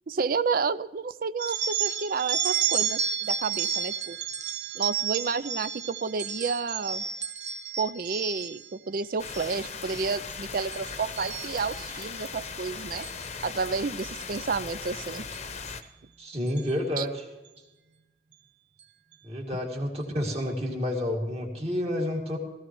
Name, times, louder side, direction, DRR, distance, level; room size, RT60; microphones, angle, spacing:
voice 1, 0.1-4.2 4.7-7.0 7.8-13.1 13.4-15.3 17.0-17.1, right 4 dB, 50° right, 17 dB, 0.4 m, -30 dB
sound 1, 1.4-8.7 9.2-9.6 9.9-10.3 10.7-12.1 13.0-13.3 14.2-14.4 15.3-15.4 15.8-15.9 16.5-16.7, right 8 dB, 75° right, 1.4 m, -31 dB
sound 2, 9.2-15.8, left 5 dB, 35° left, 0.8 m, -38 dB
voice 2, 16.2-17.2 19.2-22.4, left 1 dB, 35° right, 1 dB, 2.4 m, -30 dB
17.0 x 15.5 x 3.1 m, 1.1 s
head